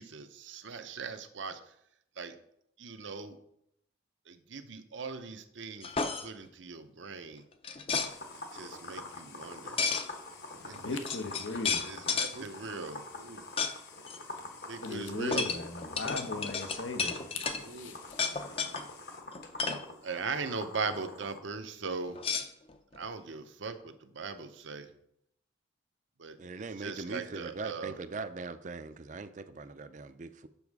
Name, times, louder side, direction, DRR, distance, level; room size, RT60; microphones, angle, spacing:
voice 1, 0.0-1.6 2.2-2.3 2.8-3.4 4.3-5.9 6.2-7.4 8.5-9.8 10.6-10.7 11.8-13.4 14.7-15.4 17.6-18.0 20.0-22.2 23.0-23.7 24.1-24.9 26.2-28.0, right 4 dB, 75° right, 0.7 m, -39 dB
sound 1, 5.8-6.3 7.6-8.1 9.8-10.1 10.7-10.8 11.1-12.3 13.6-13.7 14.1-14.2 15.3-17.6 18.1-18.8 19.3-19.8 22.1-23.0, left 5 dB, 30° left, 0.5 m, -32 dB
sound 2, 7.9-21.4, left 2 dB, 55° left, 1.0 m, -46 dB
voice 2, 10.6-12.2 14.8-18.3, left 3 dB, 85° left, 1.0 m, -39 dB
voice 3, 26.4-30.5, right 3 dB, 40° right, 0.4 m, -41 dB
7.0 x 6.2 x 4.7 m
head